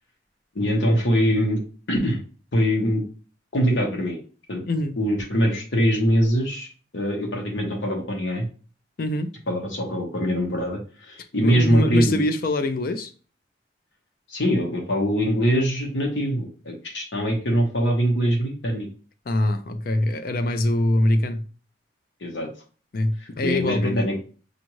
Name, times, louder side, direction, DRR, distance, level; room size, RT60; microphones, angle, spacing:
voice 1, 0.5-1.6 1.9-2.2 2.5-3.0 3.5-4.2 4.5-4.6 5.0-8.5 9.5-12.2 14.3-18.9 22.2-22.5 23.4-24.2, equal, 75° left, 1.0 m, -23 dB
voice 2, 4.7-5.0 9.0-9.3 11.4-13.1 19.3-21.4 22.9-24.1, left 1 dB, 50° left, 0.5 m, -24 dB
5.2 x 2.5 x 3.0 m
head